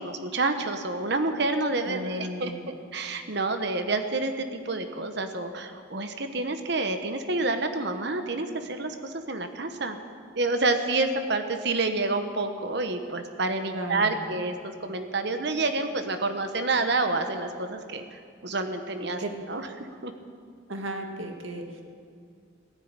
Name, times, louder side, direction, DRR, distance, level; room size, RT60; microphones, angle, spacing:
voice 1, 0.0-10.0 10.3-19.2 19.5-20.1, right 3 dB, 55° right, 7 dB, 1.3 m, -28 dB
voice 2, 1.9-2.7 13.7-14.2 19.2-19.3 20.7-21.8, right 1 dB, 80° right, 4 dB, 1.9 m, -35 dB
15.5 x 10.5 x 9.0 m, 2.3 s
head